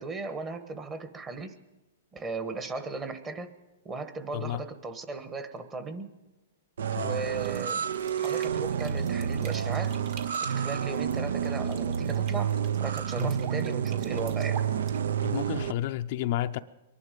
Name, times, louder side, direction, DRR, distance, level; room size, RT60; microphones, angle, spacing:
voice 1, 0.0-1.5 2.1-3.5 3.8-6.1 6.9-7.8 8.2-10.0 10.4-12.5 12.8-14.6, right 3 dB, 20° right, 9 dB, 1.3 m, -36 dB
Pinko(wrec't), 6.8-15.7, right 8 dB, 75° right, 0.6 m, -29 dB
sound 1, 7.3-15.5, right 7 dB, 45° right, 1.7 m, -48 dB
voice 2, 15.2-16.6, left 13 dB, 50° left, 9 dB, 0.5 m, -31 dB
24.0 x 11.0 x 5.2 m, 1.1 s
hypercardioid pair, 140°, 0 cm